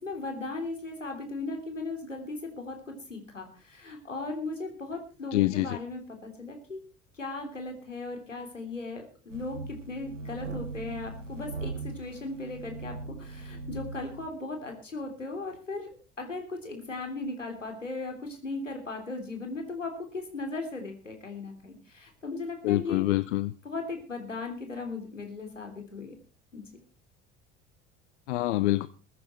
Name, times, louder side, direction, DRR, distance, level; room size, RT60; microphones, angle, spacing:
voice 1, 0.0-6.8 7.1-15.9 16.2-23.0 23.4-26.1 26.5-26.6, left 3 dB, 90° left, 3.4 m, -37 dB
voice 2, 5.3-5.8 22.6-23.5 28.3-28.9, left 17 dB, 70° left, 0.8 m, -26 dB
sound 1, 9.3-14.3, right 3 dB, 90° right, 1.1 m, -39 dB
21.5 x 9.5 x 4.5 m
figure-of-eight pair, 60°, 36 cm